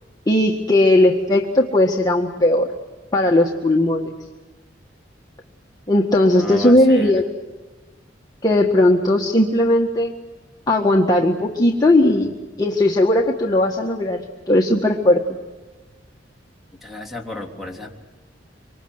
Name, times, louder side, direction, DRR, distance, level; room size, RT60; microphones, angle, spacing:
voice 1, 0.3-2.7 3.1-4.1 5.9-7.2 8.4-10.1 10.7-12.3 12.6-15.4, left 1 dB, 20° left, -1 dB, 1.7 m, -17 dB
voice 2, 6.3-7.2 16.8-17.9, left 2 dB, ahead, 1 dB, 3.5 m, -32 dB
26.0 x 25.0 x 8.0 m, 1.2 s
head